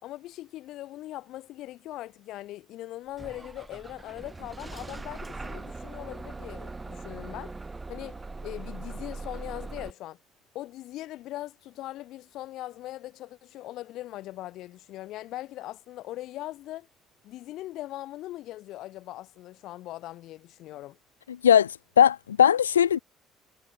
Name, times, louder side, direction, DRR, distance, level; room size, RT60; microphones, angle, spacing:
voice 1, 0.0-7.5 7.9-10.2 10.5-16.9 17.2-21.0, left 15 dB, 60° left, 4.6 m, -40 dB
Bus / Engine starting, 3.2-9.9, right 3 dB, 20° right, 3.9 m, -40 dB
voice 2, 21.4-23.0, left 9 dB, 80° left, 0.4 m, -19 dB
figure-of-eight pair, 50°, 0 cm